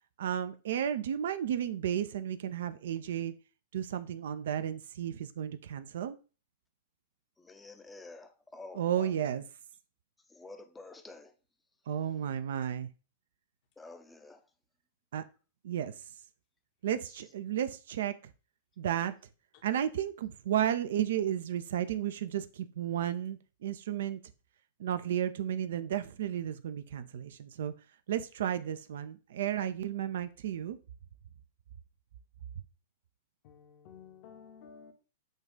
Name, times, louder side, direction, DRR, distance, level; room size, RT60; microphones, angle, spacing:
voice 1, 0.2-3.3 3.7-6.2 8.7-9.4 11.9-12.9 15.1-15.2 15.6-15.9 16.8-18.1 18.8-19.1 19.6-24.2 24.8-27.7 28.1-30.8, right 10 dB, 55° right, 0.3 m, -33 dB
voice 2, 7.5-9.1 10.3-11.3 13.8-14.4, left 3 dB, 10° left, 0.5 m, -49 dB
voice 3, 33.4-34.9, left 7 dB, 40° left, 0.8 m, -53 dB
6.3 x 2.4 x 3.6 m
figure-of-eight pair, 100°, 0 cm